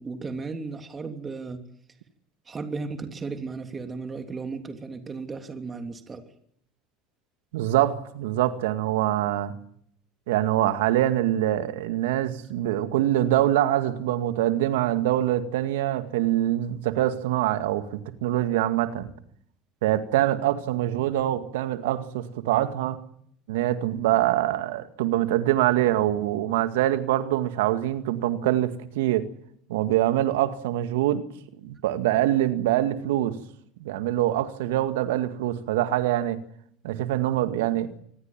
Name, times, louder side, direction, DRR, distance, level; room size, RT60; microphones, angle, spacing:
voice 1, 0.0-1.6 2.5-6.2, right 4 dB, 25° right, 5 dB, 3.1 m, -35 dB
voice 2, 7.5-9.5 10.3-19.1 19.8-23.0 23.5-29.3 29.7-31.2 31.6-33.4 33.8-36.4 36.8-37.9, right 13 dB, 75° right, 9 dB, 2.0 m, -24 dB
26.5 x 20.0 x 7.5 m, 0.68 s
hypercardioid pair, 75°, 0 cm